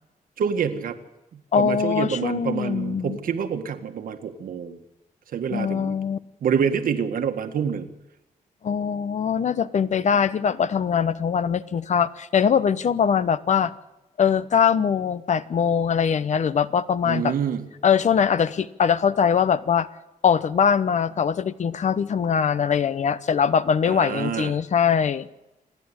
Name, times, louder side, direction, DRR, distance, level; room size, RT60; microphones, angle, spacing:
voice 1, 0.4-1.0 1.3-4.8 5.3-6.0 6.4-7.9 17.0-17.6 23.8-24.5, right 7 dB, 85° right, 7 dB, 1.7 m, -27 dB
voice 2, 1.5-3.2 5.5-6.2 8.6-13.7 14.2-17.3 17.8-19.9 20.2-25.3, left 7 dB, 55° left, 15 dB, 0.9 m, -22 dB
27.5 x 11.0 x 9.8 m, 0.95 s
wide cardioid pair, 120°, 14 cm